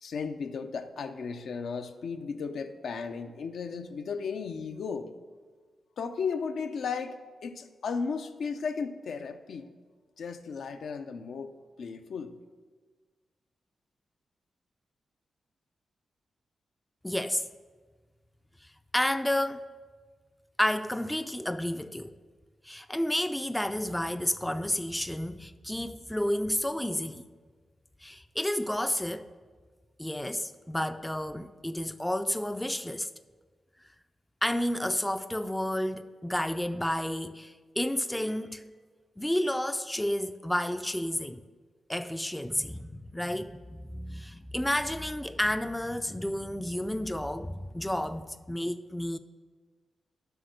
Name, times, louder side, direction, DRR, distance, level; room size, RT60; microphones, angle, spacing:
voice 1, 0.0-5.1 6.0-9.7 10.2-11.5 11.8-12.3, left 5 dB, 75° left, 0.6 m, -35 dB
voice 2, 17.0-17.5 18.9-19.7 20.6-22.2 22.6-27.3 28.0-29.3 30.0-33.1 34.4-38.6 39.2-41.4 41.9-49.2, left 1 dB, 5° left, 0.3 m, -31 dB
8.0 x 6.1 x 6.5 m
cardioid pair, 95°, 0 cm